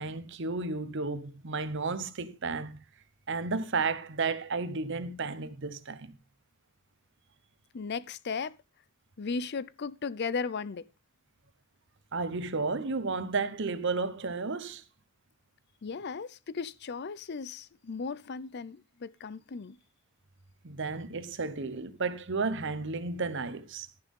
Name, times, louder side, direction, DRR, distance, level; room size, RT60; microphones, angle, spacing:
voice 1, 0.0-2.8 3.3-6.2 12.1-14.8 20.6-23.9, right 4 dB, 60° right, 1.0 m, -33 dB
voice 2, 7.7-8.5 9.2-10.8 15.8-19.8, left 5 dB, 55° left, 0.5 m, -36 dB
11.5 x 10.0 x 3.7 m
head